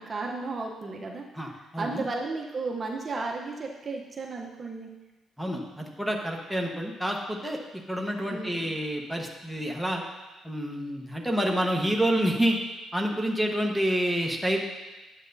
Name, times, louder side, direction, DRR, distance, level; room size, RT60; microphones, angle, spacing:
voice 1, 0.0-1.2 1.8-4.9 8.2-8.7, right 3 dB, 35° right, 0 dB, 0.9 m, -34 dB
voice 2, 1.3-2.1 5.4-7.6 7.9-10.0 10.4-12.6 12.9-14.6, equal, ahead, 0 dB, 1.2 m, -28 dB
10.0 x 8.1 x 2.7 m, 1.1 s
cardioid pair, 90°, 0 cm